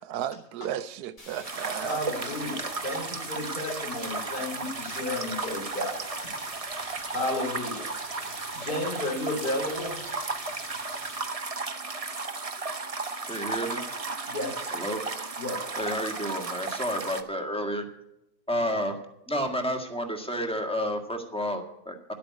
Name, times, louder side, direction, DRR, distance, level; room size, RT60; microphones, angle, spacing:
voice 1, 0.0-2.0, right 10 dB, 80° right, 1.2 m, -34 dB
sound 1, 1.2-11.2, left 1 dB, 35° left, 3.2 m, -47 dB
sound 2, 1.4-17.2, right 3 dB, 30° right, 0.9 m, -34 dB
voice 2, 1.8-6.0 7.1-7.9 8.5-9.9 14.3-14.7 15.4-15.7, left 2 dB, 75° left, 4.3 m, -32 dB
voice 3, 13.3-13.8 14.7-15.0 15.8-17.9 18.5-19.0 19.3-22.0, equal, 5° left, 1.7 m, -30 dB
12.5 x 8.6 x 8.4 m
omnidirectional pair, 1.6 m